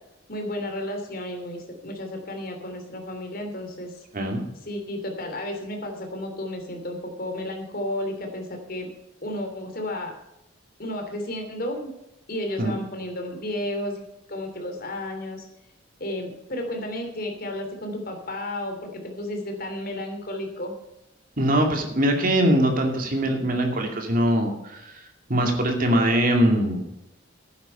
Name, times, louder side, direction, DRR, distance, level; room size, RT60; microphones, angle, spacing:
voice 1, 0.3-4.0 4.6-8.9 9.2-10.1 10.8-11.9 12.3-14.0 14.3-15.5 16.0-20.8, left 1 dB, 50° left, 4 dB, 3.0 m, -32 dB
voice 2, 21.4-25.0 25.3-26.8, right 1 dB, 45° right, 3 dB, 2.4 m, -22 dB
12.0 x 9.5 x 5.6 m, 0.89 s
head